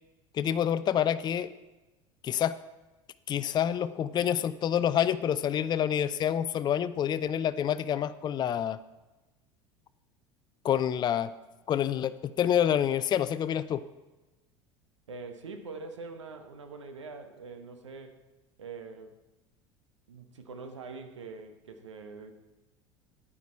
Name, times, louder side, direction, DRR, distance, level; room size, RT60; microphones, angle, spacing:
voice 1, 0.3-1.5 2.2-2.5 3.3-8.8 10.6-11.3 11.7-13.8, left 9 dB, 30° left, 13 dB, 0.4 m, -27 dB
voice 2, 15.1-18.2 18.6-19.1 20.1-22.3, right 4 dB, 80° right, 7 dB, 1.1 m, -44 dB
9.9 x 9.2 x 4.3 m, 1.1 s
figure-of-eight pair, 75°, 15 cm